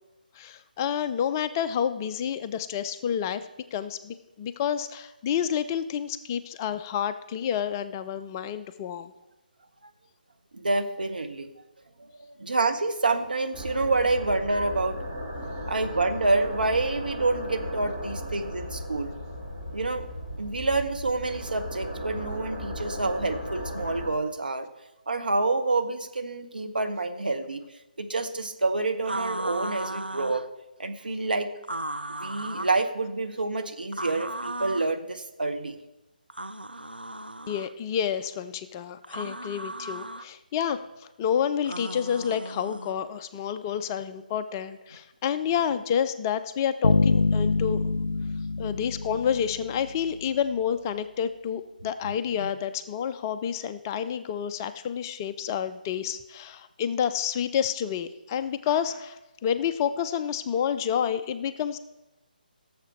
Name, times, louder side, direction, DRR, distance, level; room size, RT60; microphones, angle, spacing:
voice 1, 0.3-9.1 37.5-40.8 41.2-47.9 48.6-61.8, left 8 dB, 20° left, 11 dB, 0.4 m, -29 dB
voice 2, 10.5-11.5 12.0-15.0 15.7-19.1 19.7-20.1 20.4-24.7 25.1-27.6 28.0-30.5 30.8-31.5 32.2-35.8 52.4-52.5, right 3 dB, 65° right, 8 dB, 1.2 m, -28 dB
sound 1, 13.5-24.1, equal, 15° right, 3.6 m, -36 dB
sound 2, 29.0-30.5 31.6-32.8 33.9-34.9 36.3-37.7 39.0-40.3 41.6-43.0, right 1 dB, 90° right, 0.5 m, -36 dB
Bass guitar, 46.8-49.9, left 3 dB, 80° left, 0.5 m, -25 dB
17.0 x 7.3 x 4.4 m, 1.0 s
figure-of-eight pair, 145°, 5 cm